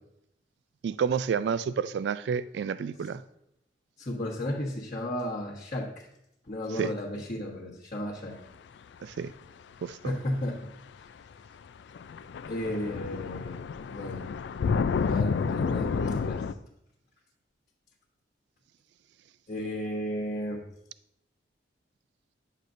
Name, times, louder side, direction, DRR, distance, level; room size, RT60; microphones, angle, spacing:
voice 1, 0.8-3.2 6.7-6.9 9.0-9.3 9.8-10.0, right 6 dB, 70° right, 15 dB, 0.3 m, -30 dB
voice 2, 4.0-6.0 6.5-8.4 10.0-10.6 12.5-13.5 13.9-14.3 15.0-16.4 19.5-20.6, left 1 dB, 45° left, -6 dB, 1.2 m, -33 dB
sound 1, 10.4-10.5 11.7-11.8 11.9-16.5, left 5 dB, 75° left, 0.3 m, -30 dB
9.9 x 6.6 x 2.5 m, 0.81 s
head